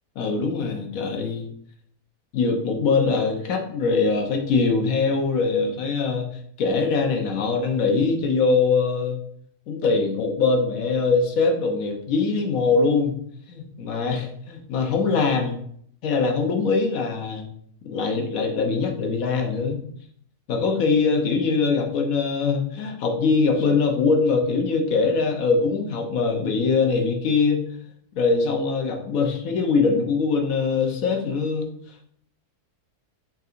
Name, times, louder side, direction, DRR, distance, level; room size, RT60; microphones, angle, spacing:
voice 1, 0.2-1.5 2.3-6.3 6.6-9.2 9.7-13.1 13.5-15.6 16.0-17.5 17.8-19.8 20.5-27.6 28.2-31.7, left 4 dB, 65° left, 3 dB, 1.1 m, -22 dB
5.6 x 3.7 x 2.5 m, 0.65 s
omnidirectional pair, 1.6 m